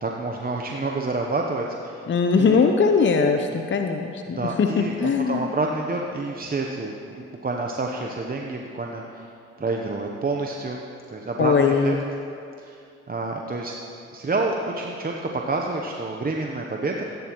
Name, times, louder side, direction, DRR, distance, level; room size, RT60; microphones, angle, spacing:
voice 1, 0.0-2.0 2.4-2.6 4.3-9.3 9.6-10.8 11.1-12.0 12.6-13.8 14.1-17.0, right 3 dB, 30° right, 1 dB, 0.9 m, -28 dB
voice 2, 2.1-5.5 11.4-12.0, left 5 dB, 40° left, 5 dB, 0.7 m, -21 dB
15.5 x 9.2 x 3.0 m, 2.5 s
supercardioid pair, 50°, 31 cm